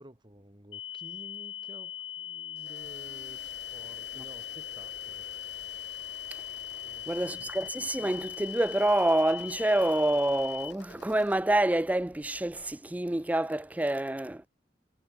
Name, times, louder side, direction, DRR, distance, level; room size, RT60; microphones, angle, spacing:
voice 1, 0.0-5.2 6.8-7.5, right 1 dB, 25° right, 3.2 m, -52 dB
sound 1, 0.7-10.7, left 12 dB, 90° left, 1.4 m, -40 dB
sound 2, 2.6-11.4, left 4 dB, 65° left, 2.6 m, -51 dB
sound 3, 2.8-12.8, equal, 40° right, 6.1 m, -63 dB
voice 2, 7.1-14.5, right 1 dB, 10° right, 0.4 m, -27 dB
head